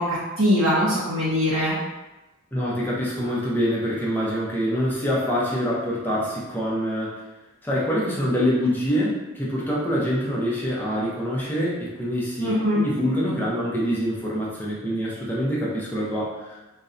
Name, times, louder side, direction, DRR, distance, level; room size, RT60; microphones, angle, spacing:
voice 1, 0.0-1.7 12.4-12.8, equal, 85° right, -7 dB, 0.5 m, -22 dB
voice 2, 2.5-7.2 7.6-12.5 12.8-16.6, equal, 10° left, -6 dB, 0.5 m, -25 dB
2.6 x 2.0 x 2.4 m, 1.1 s
head